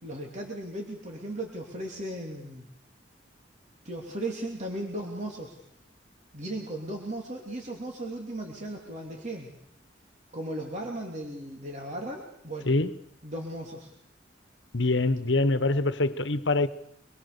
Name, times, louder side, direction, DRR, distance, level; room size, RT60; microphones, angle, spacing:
voice 1, 0.0-2.7 3.8-5.6 6.3-9.5 10.3-12.7 13.2-13.9, right 1 dB, 40° right, 3.0 m, -36 dB
voice 2, 12.6-13.0 14.7-16.7, left 2 dB, 75° left, 1.3 m, -24 dB
25.0 x 22.0 x 6.9 m
head